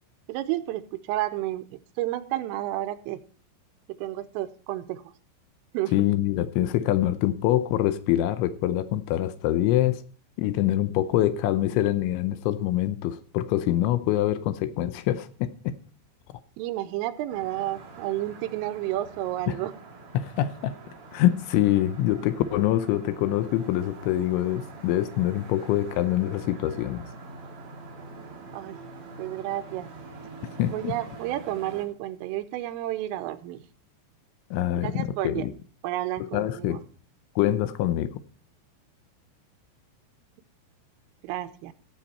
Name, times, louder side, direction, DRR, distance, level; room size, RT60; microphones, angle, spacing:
voice 1, 0.3-3.2 3.9-5.1 5.7-5.9 16.6-19.7 28.5-28.8 29.2-29.9 30.7-33.6 34.8-35.5 35.8-36.8 41.2-41.7, right 14 dB, 85° right, 3.3 m, -31 dB
voice 2, 5.9-10.0 10.4-15.8 19.5-19.6 20.1-20.8 21.1-27.0 30.4-31.0 34.5-35.5 36.2-36.8 37.4-38.2, left 13 dB, 80° left, 2.8 m, -25 dB
sound 1, 17.3-31.8, right 3 dB, 40° right, 2.3 m, -45 dB
15.0 x 7.2 x 4.2 m
omnidirectional pair, 5.8 m